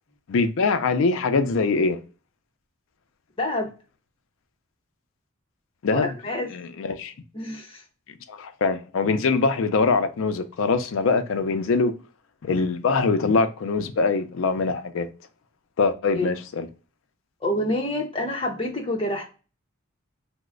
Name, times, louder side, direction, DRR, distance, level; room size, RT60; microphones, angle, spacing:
voice 1, 0.3-2.0 5.8-6.1 6.5-7.1 8.3-11.9 12.4-15.1 15.8-16.7, left 4 dB, 80° left, 0.4 m, -23 dB
voice 2, 3.4-3.7 5.9-6.5 7.3-7.8 16.1-16.3 17.4-19.3, left 1 dB, 25° left, 0.7 m, -27 dB
3.0 x 2.0 x 3.6 m
head